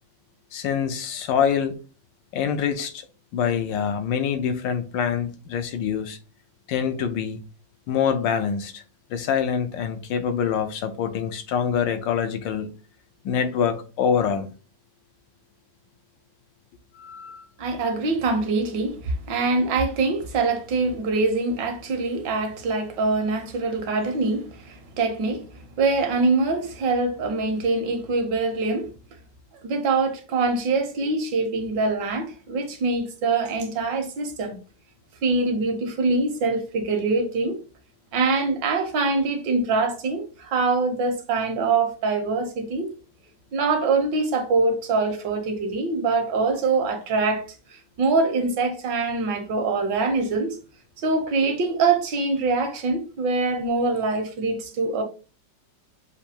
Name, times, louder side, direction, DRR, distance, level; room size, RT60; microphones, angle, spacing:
voice 1, 0.5-1.7 2.3-3.0 3.3-6.2 6.7-7.4 7.9-8.8 9.1-12.8 13.2-14.5 17.0-17.4, left 7 dB, 80° left, 1.3 m, -25 dB
voice 2, 17.6-28.9 29.6-34.6 35.2-37.6 38.1-42.9 43.5-47.4 47.7-50.6 51.0-55.0, right 3 dB, 70° right, 1.5 m, -24 dB
6.8 x 2.6 x 2.8 m
omnidirectional pair, 2.0 m